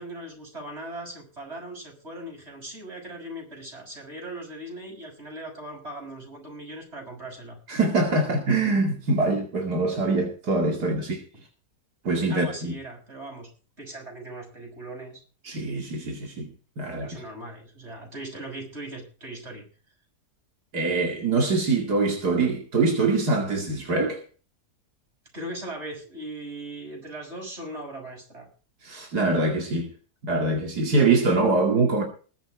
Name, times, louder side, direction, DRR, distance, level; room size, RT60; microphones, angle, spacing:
voice 1, 0.0-7.6 12.3-13.5 13.8-15.2 17.0-19.7 25.3-28.5, right 1 dB, 40° right, 6.6 m, -39 dB
voice 2, 7.7-11.2 12.0-12.7 15.4-16.5 16.8-17.1 20.7-24.2 28.8-29.9 30.2-32.0, right 3 dB, 80° right, 2.8 m, -24 dB
21.0 x 8.1 x 4.7 m
omnidirectional pair, 1.7 m